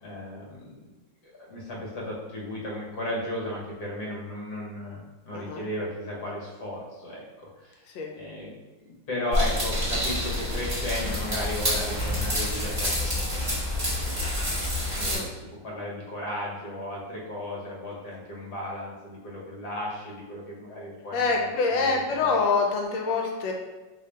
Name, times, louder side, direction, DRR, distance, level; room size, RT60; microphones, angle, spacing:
voice 1, 0.0-0.9 1.2-7.2 7.6-7.8 8.1-8.5 8.8-14.4 14.9-22.3, left 1 dB, 55° left, -4 dB, 1.4 m, -35 dB
voice 2, 5.3-5.6 7.9-8.1 15.0-15.3 21.1-23.5, left 4 dB, 75° left, 1 dB, 1.3 m, -25 dB
sound 1, 9.3-15.2, left 1 dB, 15° right, 1.2 m, -28 dB
3.3 x 2.7 x 3.3 m, 1.1 s
omnidirectional pair, 2.1 m